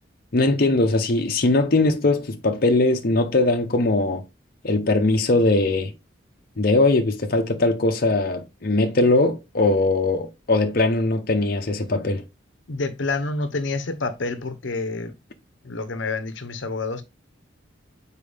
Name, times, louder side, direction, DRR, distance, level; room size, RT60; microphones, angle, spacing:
voice 1, 0.3-4.2 4.6-5.9 6.6-12.2, left 2 dB, 50° left, 0.8 m, -20 dB
voice 2, 12.7-15.1 15.6-17.0, left 3 dB, 80° left, 0.8 m, -28 dB
6.9 x 4.5 x 3.4 m
head